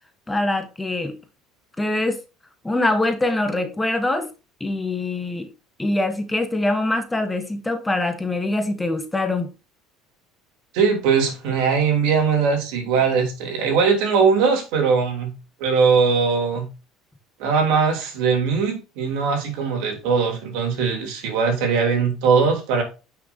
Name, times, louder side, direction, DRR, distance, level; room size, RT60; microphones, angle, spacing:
voice 1, 0.3-1.2 1.8-2.2 2.6-4.3 4.6-5.5 5.8-9.5, left 2 dB, 10° left, 1.1 m, -23 dB
voice 2, 10.7-15.3 15.6-16.7 17.4-22.8, right 5 dB, 75° right, 3.2 m, -20 dB
9.4 x 6.0 x 2.7 m
cardioid pair, 130°, 0 cm